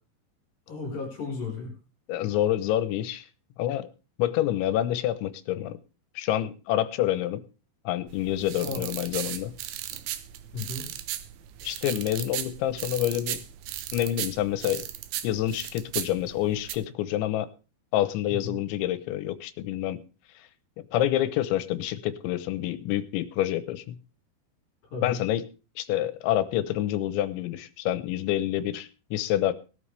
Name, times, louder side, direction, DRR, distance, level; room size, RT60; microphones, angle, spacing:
voice 1, 0.7-1.7 8.6-8.9 10.5-10.9 18.3-18.6 24.8-25.2, left 4 dB, 50° left, 0 dB, 6.0 m, -34 dB
voice 2, 2.1-3.2 3.6-3.9 4.2-5.8 6.2-7.4 7.9-9.5 11.6-13.4 13.9-14.8 15.2-17.5 17.9-20.0 20.8-24.0 25.0-25.4 25.8-29.5, left 12 dB, 85° left, 14 dB, 3.2 m, -27 dB
sound 1, 8.1-16.8, right 12 dB, 80° right, 3.2 m, -36 dB
19.0 x 12.5 x 3.3 m, 0.34 s
omnidirectional pair, 5.2 m